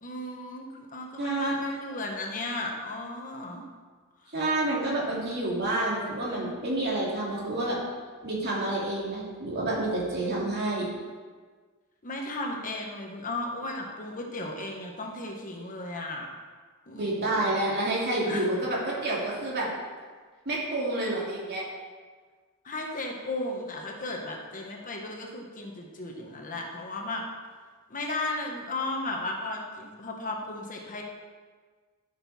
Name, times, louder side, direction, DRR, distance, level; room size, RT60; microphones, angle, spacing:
voice 1, 0.0-3.6 4.2-4.3 12.0-16.3 16.9-17.5 18.2-18.7 22.6-27.2 27.9-31.0, left 2 dB, 40° left, 1 dB, 1.3 m, -35 dB
voice 2, 1.2-1.5 4.3-7.8 8.2-10.9 17.0-19.7 20.4-21.6, right 2 dB, 50° right, -5 dB, 2.8 m, -29 dB
13.0 x 6.8 x 4.3 m, 1.5 s
head